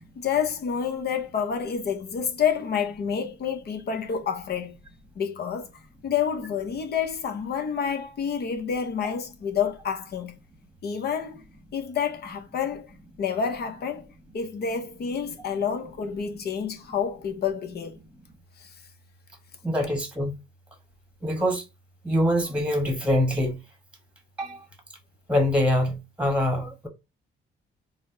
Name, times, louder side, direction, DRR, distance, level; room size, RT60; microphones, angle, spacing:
voice 1, 0.2-4.8 5.2-5.7 6.0-10.4 10.8-11.4 11.7-12.9 13.2-14.1 14.3-18.0 18.6-18.7, left 7 dB, 55° left, 0.8 m, -28 dB
voice 2, 19.6-20.4 21.2-21.6 22.0-23.6 24.4-24.6 25.3-26.9, left 1 dB, 5° right, 1.1 m, -24 dB
4.1 x 2.1 x 3.8 m
cardioid pair, 90°, 20 cm